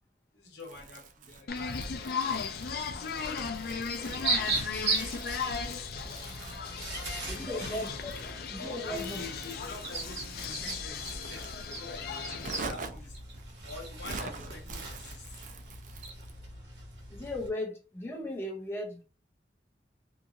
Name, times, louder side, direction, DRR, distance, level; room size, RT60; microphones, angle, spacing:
voice 1, 0.3-2.5 3.0-6.0 6.7-7.5 8.6-13.2 13.6-15.4, left 3 dB, 80° left, 0.8 m, -47 dB
Crumpling crinkling, 0.6-16.4, right 4 dB, 45° right, 0.4 m, -47 dB
sound 1, 1.5-12.7, left 5 dB, 60° left, 0.4 m, -37 dB
sound 2, 4.0-17.5, right 3 dB, 75° right, 1.3 m, -38 dB
voice 2, 7.3-8.1 8.5-9.2 17.1-19.0, left 1 dB, 15° left, 0.6 m, -37 dB
2.8 x 2.6 x 2.4 m
head